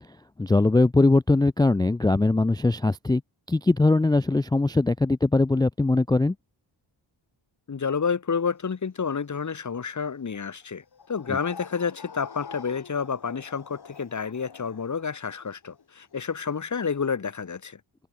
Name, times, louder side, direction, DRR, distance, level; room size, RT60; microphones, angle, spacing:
voice 1, 0.4-3.2 3.5-6.3 11.3-11.4, left 2 dB, 10° left, 0.3 m, -21 dB
voice 2, 7.7-10.8 11.1-17.8, left 6 dB, 40° left, 1.3 m, -29 dB
sound 1, 10.2-17.1, left 6 dB, 55° left, 2.6 m, -46 dB
wide cardioid pair, 95°, 47 cm